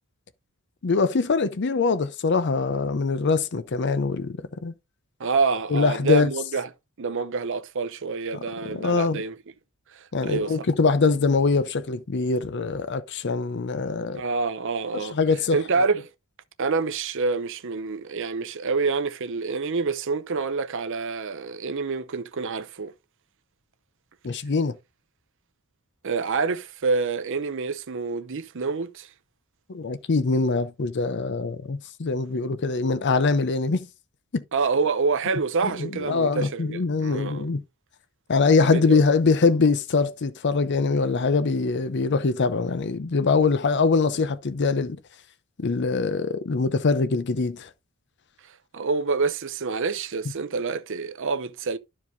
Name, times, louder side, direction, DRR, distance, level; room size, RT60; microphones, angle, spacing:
voice 1, 0.8-4.7 5.7-6.3 8.7-9.2 10.1-14.2 14.9-15.6 24.2-24.8 29.7-33.9 34.3-34.4 35.6-37.6 38.3-45.0 45.6-47.7, left 4 dB, 55° left, 0.6 m, -23 dB
voice 2, 5.2-6.7 7.0-9.3 9.9-10.6 14.1-15.2 15.5-16.0 16.6-22.9 26.0-29.1 34.5-37.5 38.7-39.0 48.7-51.8, right 4 dB, 60° right, 0.7 m, -27 dB
12.0 x 4.8 x 2.6 m
head